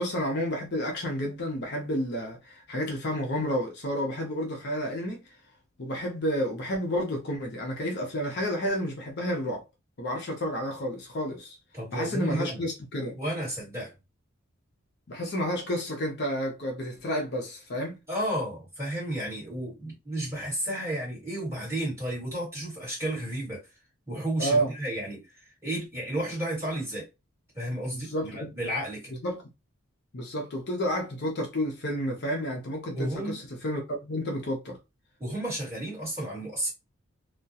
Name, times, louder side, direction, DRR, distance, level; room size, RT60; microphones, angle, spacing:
voice 1, 0.0-5.2 5.8-9.6 10.0-11.6 11.9-13.1 15.1-18.0 24.4-24.7 27.9-28.5 29.2-29.4 30.1-34.8, equal, 50° left, 0.5 m, -30 dB
voice 2, 11.7-12.6 13.1-13.9 18.1-23.6 24.1-27.1 27.5-29.1 32.9-33.4 35.2-36.7, right 1 dB, 10° right, 1.4 m, -32 dB
2.3 x 2.1 x 2.7 m
head